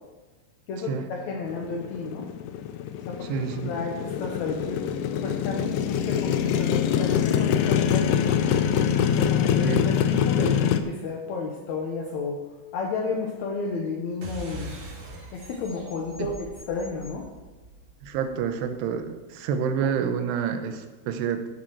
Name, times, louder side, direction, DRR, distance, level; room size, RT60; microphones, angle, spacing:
voice 1, 0.7-2.3 3.1-3.3 3.6-8.4 9.1-12.4 12.7-14.7 15.3-17.3, left 4 dB, 65° left, -1 dB, 1.8 m, -32 dB
Motorcycle, 1.5-10.8, left 9 dB, 85° left, 1.8 m, -24 dB
voice 2, 3.3-3.7 9.6-9.9 10.2-10.3 18.0-21.5, right 7 dB, 85° right, 7 dB, 3.0 m, -28 dB
sound 1, 14.2-19.1, equal, 50° right, 3.9 m, -42 dB
15.0 x 7.2 x 4.6 m, 1.2 s
omnidirectional pair, 4.7 m